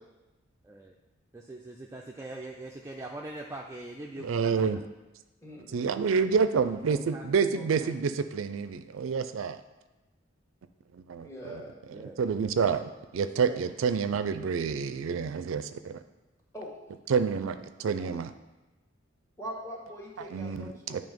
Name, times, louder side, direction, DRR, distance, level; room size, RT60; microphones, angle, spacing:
voice 1, 0.6-0.9 1.3-4.7 6.7-7.9 11.6-12.5 12.8-12.9 13.5-13.7 17.4-18.1, right 2 dB, 15° right, 0 dB, 0.4 m, -43 dB
voice 2, 4.2-4.8 5.7-9.6 10.9-11.6 12.2-16.0 17.1-18.3 20.3-21.0, right 6 dB, 85° right, 11 dB, 0.4 m, -28 dB
voice 3, 5.4-6.0 11.2-11.8 16.5-16.7 19.4-21.0, equal, 15° left, -3 dB, 1.3 m, -42 dB
9.0 x 3.3 x 5.1 m, 1.1 s
head